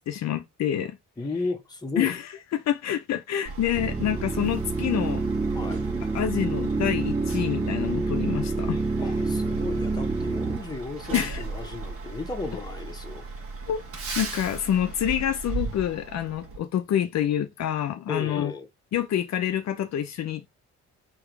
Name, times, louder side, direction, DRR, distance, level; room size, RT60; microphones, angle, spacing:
voice 1, 0.0-1.0 2.0-2.2 2.5-5.2 6.1-8.8 11.1-11.4 13.7-13.8 14.2-18.5 18.9-20.5, left 10 dB, 65° left, 0.7 m, -27 dB
voice 2, 1.2-2.2 5.5-5.8 9.0-13.3 18.1-18.7, left 3 dB, 15° left, 1.2 m, -34 dB
Truck, 3.4-16.6, right 3 dB, 50° right, 1.6 m, -36 dB
sound 1, 3.7-10.6, right 3 dB, 15° right, 0.6 m, -28 dB
3.6 x 3.0 x 4.7 m
cardioid pair, 90°, 30 cm